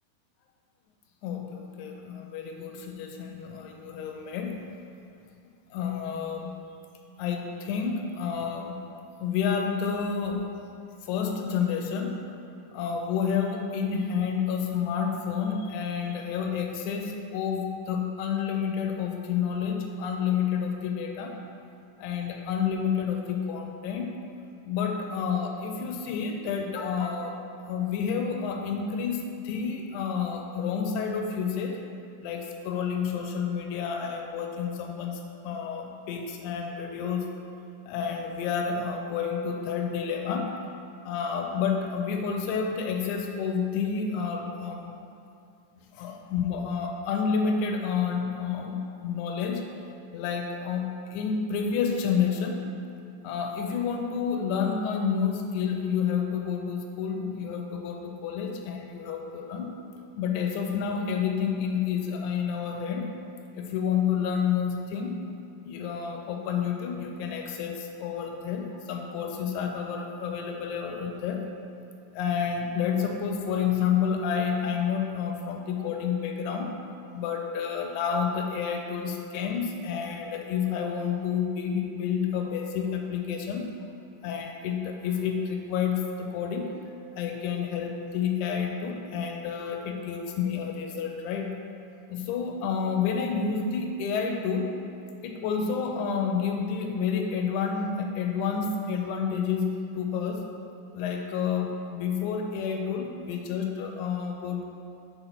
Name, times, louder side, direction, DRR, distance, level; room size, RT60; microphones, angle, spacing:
voice 1, 1.2-4.6 5.7-6.6 7.2-8.9 9.2-10.5 11.1-12.2 12.7-21.3 22.0-24.1 24.6-31.8 32.2-37.3 37.9-40.5 41.0-44.9 45.9-49.7 50.1-52.6 53.2-59.7 60.2-63.1 63.5-65.2 65.6-71.5 72.1-76.7 77.1-83.7 84.2-86.7 87.2-91.5 92.1-94.7 95.2-100.4 100.9-104.6, left 6 dB, 80° left, 3 dB, 1.9 m, -29 dB
5.6 x 4.2 x 5.8 m, 2.6 s
omnidirectional pair, 3.8 m